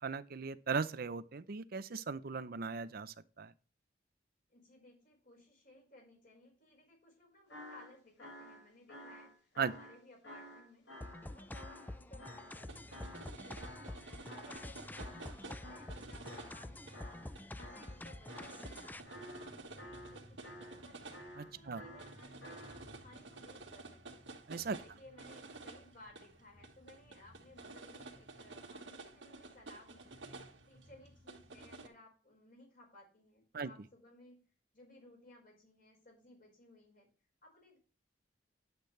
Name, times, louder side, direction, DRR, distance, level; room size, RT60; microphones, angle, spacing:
voice 1, 0.0-3.5 9.6-9.7 21.4-21.8 24.5-24.8 33.5-33.7, right 5 dB, 55° right, 0.6 m, -38 dB
voice 2, 4.5-10.9 11.2-17.2 17.5-21.2 21.5-24.3 24.8-30.2 30.7-34.5 34.7-37.1 37.4-37.8, left 1 dB, 50° left, 4.9 m, -60 dB
sound 1, 7.5-13.3 13.6-16.7 16.9-18.0 18.3-18.7 19.0-20.9 21.1-22.9, left 1 dB, 75° left, 5.8 m, -52 dB
sound 2, 11.0-19.0, left 1 dB, 10° left, 0.4 m, -48 dB
sound 3, 12.5-31.9, right 2 dB, 85° right, 1.7 m, -52 dB
10.5 x 8.1 x 3.2 m
head